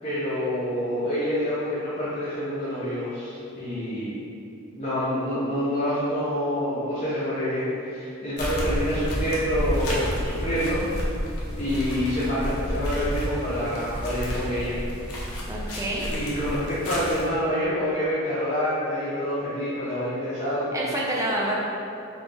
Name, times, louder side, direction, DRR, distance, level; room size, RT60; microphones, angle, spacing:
voice 1, 0.0-4.1 4.7-10.8 11.6-14.8 16.1-20.8, equal, 30° left, -11 dB, 0.6 m, -27 dB
sound 1, 8.4-17.3, equal, 90° left, 0.8 m, -30 dB
voice 2, 15.5-16.1 20.7-21.5, right 1 dB, 15° right, -4 dB, 0.4 m, -28 dB
4.0 x 2.3 x 3.3 m, 2.6 s
head